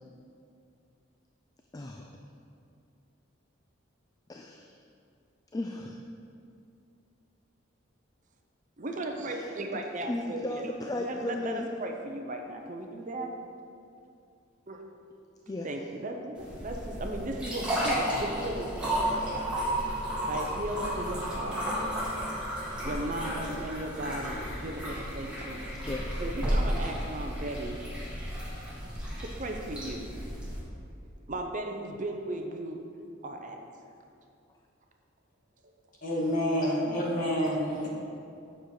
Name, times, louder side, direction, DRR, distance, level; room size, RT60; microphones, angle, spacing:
voice 1, 1.7-2.2 4.3-4.7 5.5-6.0 9.2-9.5 10.1-11.7 15.5-15.7 25.8-26.2, left 1 dB, 20° left, 3 dB, 0.3 m, -35 dB
voice 2, 8.8-10.7 11.0-13.3 14.7-14.8 15.6-19.7 20.3-21.7 22.8-25.6 26.2-27.8 29.2-30.1 31.3-32.8 33.2-33.6, right 1 dB, 40° right, 3 dB, 0.6 m, -36 dB
sound 1, 16.4-30.6, equal, 5° right, 1.9 m, -33 dB
voice 3, 36.0-37.9, equal, 40° left, -4 dB, 1.8 m, -28 dB
8.0 x 6.5 x 4.8 m, 2.5 s
head